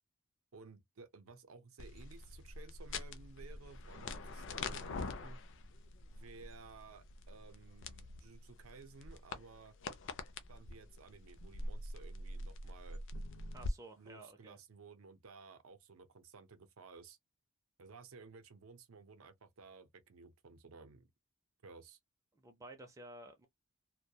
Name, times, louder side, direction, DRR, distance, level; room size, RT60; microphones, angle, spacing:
voice 1, 0.5-5.4 6.1-9.7 10.5-13.0 14.0-17.2 17.8-21.1 21.6-22.0, right 4 dB, 70° right, 0.6 m, -56 dB
sound 1, 1.8-13.7, left 2 dB, 55° left, 0.4 m, -45 dB
voice 2, 13.5-14.6 22.3-23.5, right 2 dB, 15° right, 0.4 m, -53 dB
2.2 x 2.2 x 2.7 m
head